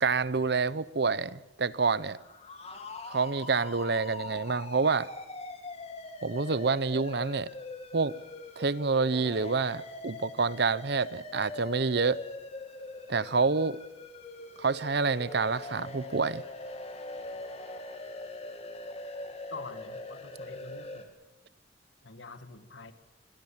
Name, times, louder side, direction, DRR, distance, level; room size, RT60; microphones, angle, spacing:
voice 1, 0.0-2.2 3.1-5.1 6.2-7.5 7.9-8.1 8.6-12.2 13.1-13.8 14.6-16.4, right 4 dB, 60° right, 0.8 m, -28 dB
sound 1, 2.1-21.0, left 2 dB, 35° left, 2.8 m, -42 dB
voice 2, 19.5-21.1 22.0-22.9, left 3 dB, 80° left, 2.1 m, -46 dB
26.5 x 22.0 x 7.4 m
head